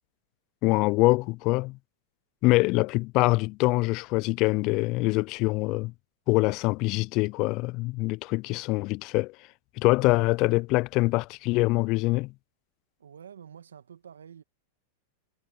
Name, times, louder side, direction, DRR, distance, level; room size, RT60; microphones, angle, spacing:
voice 1, 0.6-1.8 2.4-5.9 6.3-9.3 9.8-12.3, left 23 dB, 50° left, 0.3 m, -24 dB
voice 2, 13.0-14.4, right 8 dB, 85° right, 2.2 m, -48 dB
hypercardioid pair, 105°, 0 cm